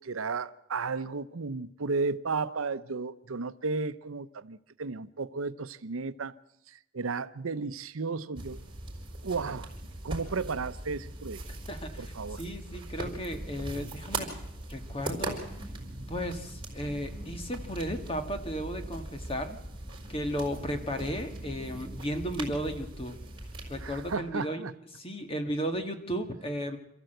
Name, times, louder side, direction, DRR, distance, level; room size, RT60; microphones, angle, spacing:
voice 1, 0.0-6.3 6.7-8.6 9.2-9.7 10.0-11.4 12.0-12.4 23.8-24.7, right 4 dB, 75° right, 0.7 m, -34 dB
sound 1, 8.4-24.2, right 1 dB, 25° right, 4.6 m, -40 dB
voice 2, 11.7-14.4 14.7-15.4 16.1-19.6 20.1-23.2 23.7-24.6 24.9-26.8, equal, 25° left, 1.6 m, -34 dB
27.5 x 14.0 x 7.9 m
head